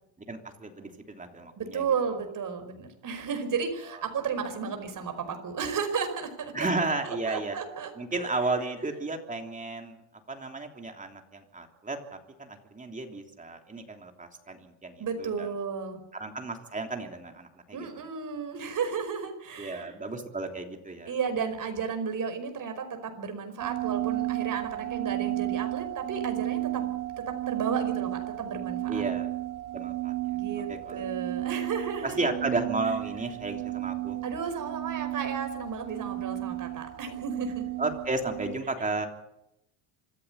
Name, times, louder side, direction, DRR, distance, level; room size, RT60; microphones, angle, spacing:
voice 1, 0.3-1.9 6.5-7.6 8.0-15.5 16.1-17.9 19.6-21.1 28.9-29.3 29.7-30.1 30.7-31.1 32.0-34.2 37.8-39.1, right 3 dB, 15° right, 3 dB, 3.2 m, -33 dB
voice 2, 1.6-6.5 7.0-7.9 8.2-8.3 15.0-16.0 17.7-19.9 21.1-26.8 27.5-29.0 30.3-32.2 34.2-37.6, right 6 dB, 40° right, 7 dB, 5.2 m, -33 dB
sound 1, 23.6-38.5, right 18 dB, 75° right, 3.5 m, -33 dB
26.0 x 14.5 x 8.3 m, 0.85 s
cardioid pair, 130°, 49 cm